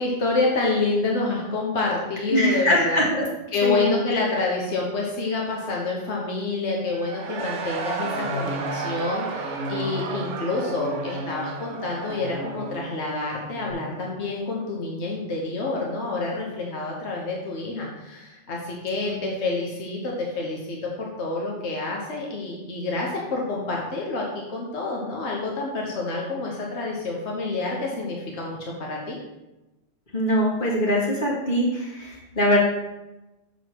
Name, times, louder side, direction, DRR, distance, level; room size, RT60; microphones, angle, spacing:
voice 1, 0.0-3.1 3.5-29.2, left 3 dB, 70° left, -2 dB, 1.4 m, -28 dB
voice 2, 2.3-3.2 3.6-4.2 19.0-19.3 30.1-32.6, equal, 45° left, -4 dB, 2.1 m, -23 dB
Cheering / Crowd, 6.9-13.6, right 4 dB, 90° right, 1.1 m, -34 dB
sound 1, 7.4-13.1 13.4-13.7, equal, 5° right, 1.4 m, -36 dB
7.1 x 4.0 x 6.1 m, 1.0 s
omnidirectional pair, 1.2 m